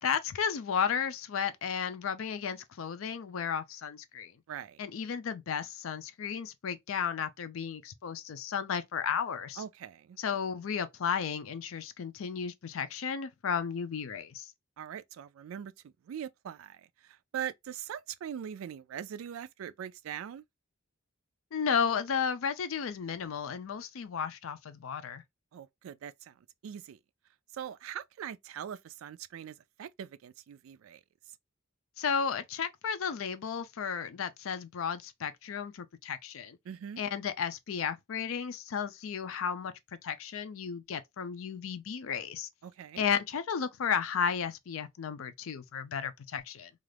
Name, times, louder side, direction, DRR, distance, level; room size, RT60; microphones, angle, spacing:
voice 1, 0.0-4.3 4.8-9.6 10.2-14.5 21.5-25.2 32.0-36.6 37.0-39.7 40.0-42.5 43.0-46.7, left 7 dB, 75° left, 0.4 m, -33 dB
voice 2, 4.5-4.8 9.6-10.2 14.8-20.4 25.5-26.3 26.6-27.0 27.5-31.0 36.7-37.0 42.6-43.0, right 9 dB, 75° right, 0.3 m, -42 dB
2.5 x 2.4 x 3.3 m
head